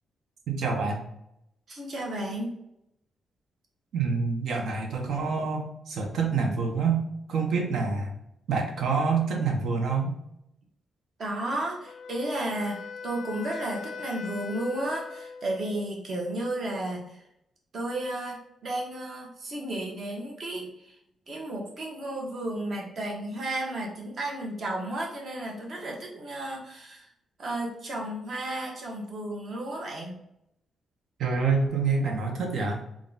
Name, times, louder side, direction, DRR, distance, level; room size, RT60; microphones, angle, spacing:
voice 1, 0.5-1.0 3.9-7.0 7.3-8.1 8.5-10.1 31.2-32.8, right 4 dB, 70° right, 2 dB, 0.9 m, -27 dB
voice 2, 1.7-2.5 11.2-17.1 17.7-20.9 21.3-27.1 27.4-30.1, right 1 dB, 45° right, -1 dB, 1.1 m, -33 dB
Wind instrument woodwind instrument, 11.9-15.9, left 5 dB, 75° left, 0.3 m, -41 dB
3.8 x 2.4 x 3.9 m, 0.79 s
wide cardioid pair, 145°, 0 cm